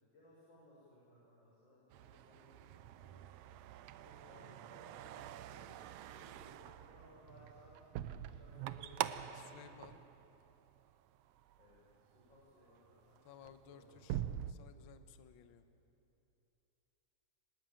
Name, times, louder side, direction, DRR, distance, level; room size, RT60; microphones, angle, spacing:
voice 1, 0.1-3.2 4.0-9.4 11.6-13.2 13.7-14.0, left 1 dB, 35° left, -7 dB, 7.1 m, -62 dB
sound 1, 1.9-10.9 11.3-11.8 12.3-12.5 12.8-14.5, right 12 dB, 75° right, 1.5 m, -45 dB
voice 2, 9.3-10.0 13.2-14.2 14.5-15.6, left 8 dB, 65° left, 9 dB, 1.3 m, -58 dB
24.5 x 20.0 x 9.0 m, 3.0 s
omnidirectional pair, 3.6 m